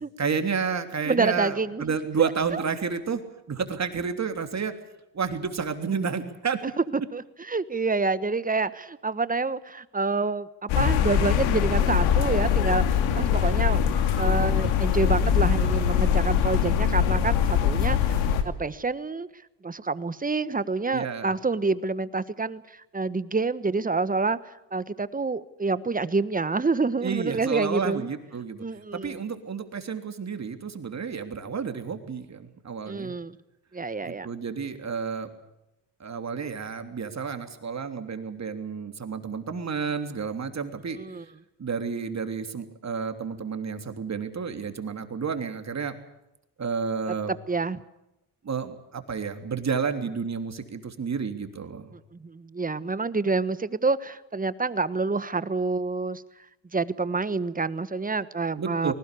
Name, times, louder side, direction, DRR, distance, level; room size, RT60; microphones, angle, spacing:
voice 1, 0.2-3.2 3.5-4.7 5.1-6.6 20.9-21.4 27.0-28.6 28.9-33.1 34.0-35.3 36.0-41.0 41.6-45.9 46.6-47.3 48.4-51.9 58.6-58.9, right 6 dB, 35° right, 7 dB, 3.3 m, -31 dB
voice 2, 1.1-2.6 7.1-13.8 14.2-19.3 19.6-28.1 28.6-29.2 32.9-33.4 33.7-34.3 40.9-41.2 47.3-47.8 52.1-56.2 56.7-58.9, right 3 dB, 20° right, 15 dB, 1.3 m, -28 dB
sound 1, 10.7-18.4, left 8 dB, 80° left, 2.8 m, -22 dB
21.0 x 18.5 x 8.4 m, 0.91 s
supercardioid pair, 70°, 46 cm